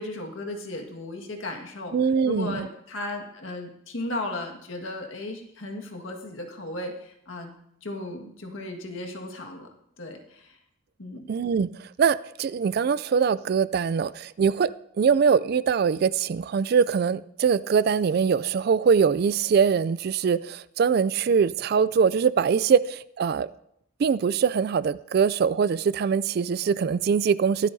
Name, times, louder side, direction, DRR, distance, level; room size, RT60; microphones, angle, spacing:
voice 1, 0.0-1.9 2.2-7.5 7.8-9.7 10.0-10.6 11.0-11.3, left 2 dB, 75° left, 3 dB, 1.7 m, -35 dB
voice 2, 1.9-2.7 11.3-14.7 15.0-23.5 24.0-27.7, right 6 dB, 50° right, 18 dB, 0.3 m, -23 dB
23.0 x 8.3 x 2.7 m, 0.76 s
head